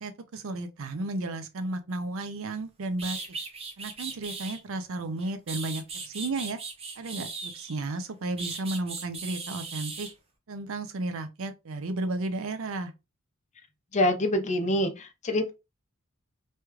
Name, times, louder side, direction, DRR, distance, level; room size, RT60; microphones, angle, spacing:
voice 1, 0.0-3.2 3.8-6.6 7.0-10.1 10.5-12.9, right 2 dB, 65° right, 0.5 m, -33 dB
sound 1, 2.6-2.7 3.0-4.6 5.2-7.8 8.4-10.1, right 4 dB, 30° right, 0.6 m, -38 dB
voice 2, 13.9-15.5, left 1 dB, 35° left, 0.6 m, -26 dB
3.2 x 2.3 x 2.9 m
head